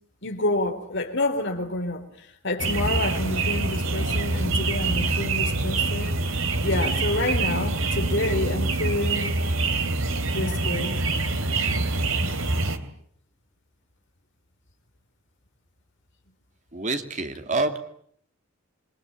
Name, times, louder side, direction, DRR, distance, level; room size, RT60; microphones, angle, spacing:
voice 1, 0.2-2.0 2.4-6.2 6.6-9.5 10.3-10.9, left 2 dB, 55° left, 6 dB, 4.2 m, -28 dB
sound 1, 2.6-12.8, right 3 dB, 65° right, 2.9 m, -25 dB
voice 2, 16.7-17.8, right 3 dB, 35° right, 7 dB, 2.5 m, -27 dB
28.0 x 23.5 x 9.0 m, 0.65 s
head